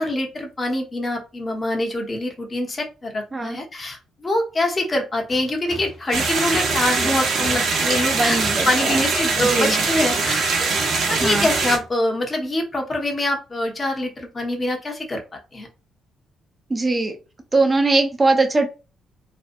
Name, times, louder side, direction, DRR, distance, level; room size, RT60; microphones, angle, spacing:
voice 1, 0.0-8.4 8.6-10.7 11.1-15.2 15.5-15.7, left 1 dB, 30° left, 1 dB, 0.9 m, -24 dB
Tools, 5.3-11.9, left 1 dB, 55° left, 1.1 m, -38 dB
sound 1, 6.1-11.8, right 4 dB, 65° right, 0.7 m, -22 dB
voice 2, 8.1-9.0 9.4-9.7 11.2-11.5 16.7-17.1 17.5-18.7, right 2 dB, 25° right, 6 dB, 0.6 m, -20 dB
2.7 x 2.2 x 2.5 m, 0.31 s
cardioid pair, 90°, 0 cm